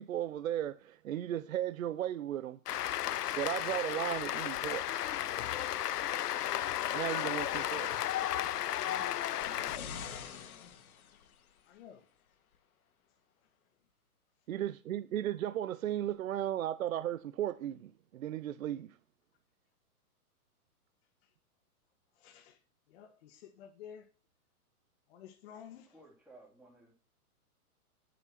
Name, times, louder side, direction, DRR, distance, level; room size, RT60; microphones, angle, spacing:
voice 1, 0.0-2.6 3.4-4.9 6.9-7.9 8.9-9.1 14.5-18.9, right 11 dB, 60° right, 0.9 m, -35 dB
Cheering / Applause, 2.7-9.8, left 12 dB, 85° left, 0.7 m, -34 dB
sound 1, 8.4-11.6 12.5-12.6, left 7 dB, 65° left, 1.9 m, -47 dB
voice 2, 8.9-10.0 11.6-12.1 21.2-21.3 22.1-22.6 22.9-24.1 25.1-26.0, left 8 dB, 40° left, 1.6 m, -53 dB
voice 3, 25.9-26.9, right 2 dB, 5° right, 2.8 m, -57 dB
10.5 x 7.6 x 5.9 m
hypercardioid pair, 145°, 45 cm